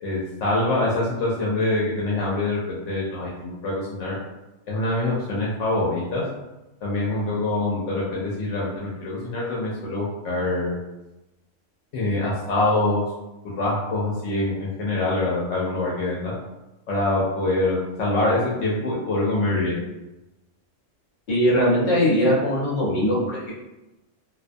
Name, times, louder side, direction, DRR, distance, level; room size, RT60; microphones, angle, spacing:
voice 1, 0.0-4.2 4.7-6.2 6.8-10.8 11.9-13.0 13.4-16.3 16.9-19.8, left 2 dB, 85° left, -5 dB, 0.9 m, -24 dB
voice 2, 21.3-23.5, equal, 65° left, -6 dB, 1.2 m, -20 dB
2.3 x 2.2 x 2.5 m, 0.99 s
omnidirectional pair, 1.2 m